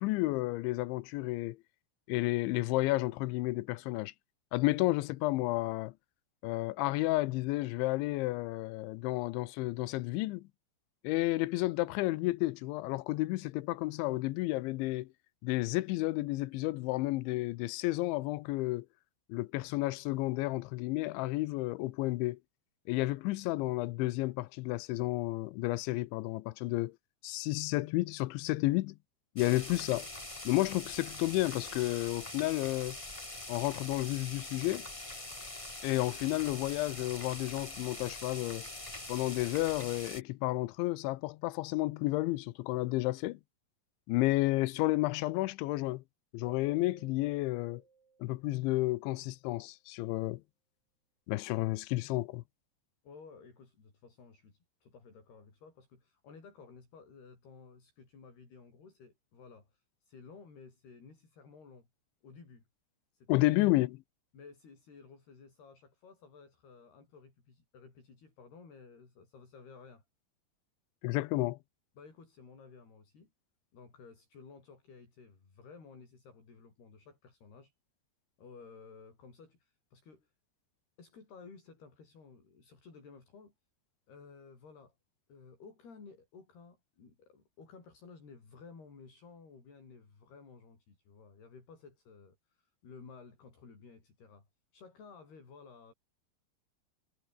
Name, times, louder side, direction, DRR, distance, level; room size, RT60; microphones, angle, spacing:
voice 1, 0.0-1.6 2.1-4.1 4.5-5.9 6.4-10.5 11.0-15.1 15.4-18.9 19.3-22.4 22.9-27.0 27.2-29.0 29.4-30.1 30.5-33.0 33.5-34.9 35.8-38.7 39.1-43.4 44.1-46.0 46.3-47.8 48.2-50.4 51.3-52.4 63.3-64.0 71.0-71.6, left 19 dB, 85° left, 3.2 m, -31 dB
sound 1, 29.4-40.2, left 2 dB, 25° left, 0.6 m, -44 dB
sound 2, 46.4-49.1, right 5 dB, 35° right, 4.0 m, -60 dB
voice 2, 53.0-61.9 62.2-62.6 63.1-63.5 64.3-70.0 72.0-73.3 73.7-77.7 78.4-80.3 81.0-83.5 84.1-85.0 85.3-94.5 94.7-95.9, left 5 dB, 60° left, 9.1 m, -54 dB
omnidirectional pair, 5.3 m